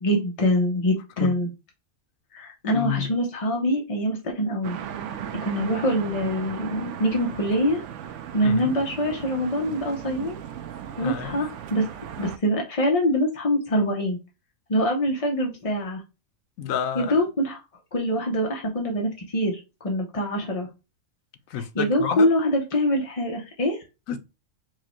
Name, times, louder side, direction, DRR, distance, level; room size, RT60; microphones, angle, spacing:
voice 1, 0.0-1.5 2.3-4.8 5.4-7.8 8.3-10.4 11.0-11.9 12.2-14.2 14.7-16.0 16.9-17.6 17.9-20.7 21.5-23.8, equal, 35° left, 0.6 m, -24 dB
voice 2, 2.6-3.1 8.4-8.7 11.0-11.4 16.6-17.1 21.5-22.3 24.1-24.2, left 7 dB, 80° left, 1.1 m, -29 dB
sound 1, 4.6-12.4, right 9 dB, 70° right, 0.9 m, -36 dB
4.8 x 2.1 x 4.3 m
omnidirectional pair, 1.4 m